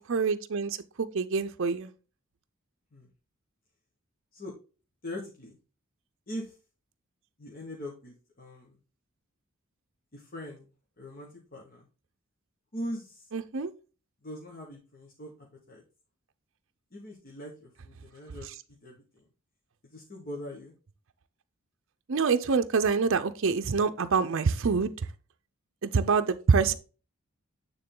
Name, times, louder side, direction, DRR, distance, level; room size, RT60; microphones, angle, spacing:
voice 1, 0.0-1.9 13.3-13.7 22.1-24.9 25.8-26.8, right 5 dB, 60° right, 0.5 m, -26 dB
voice 2, 5.0-5.6 6.3-6.6 7.4-8.8 10.1-10.7 11.0-11.9 12.7-13.3 14.2-15.8 16.9-18.5 18.8-19.2 19.8-20.7, left 1 dB, 45° left, 1.3 m, -41 dB
9.1 x 3.7 x 3.8 m
head